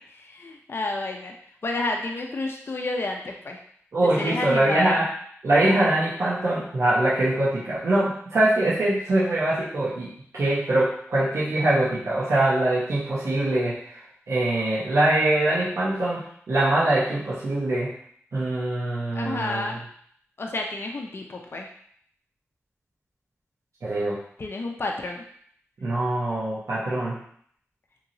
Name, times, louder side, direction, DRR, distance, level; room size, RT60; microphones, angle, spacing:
voice 1, 0.1-1.3 1.6-3.6 4.2-5.0 19.1-19.7 20.4-21.7 24.4-25.2, left 2 dB, 50° left, 1 dB, 0.4 m, -30 dB
voice 2, 3.9-5.1 5.4-13.8 14.3-17.9 18.3-19.8 23.8-24.2 25.8-27.2, right 1 dB, 85° right, -9 dB, 0.8 m, -23 dB
2.9 x 2.8 x 2.6 m, 0.62 s
wide cardioid pair, 75°, 5 cm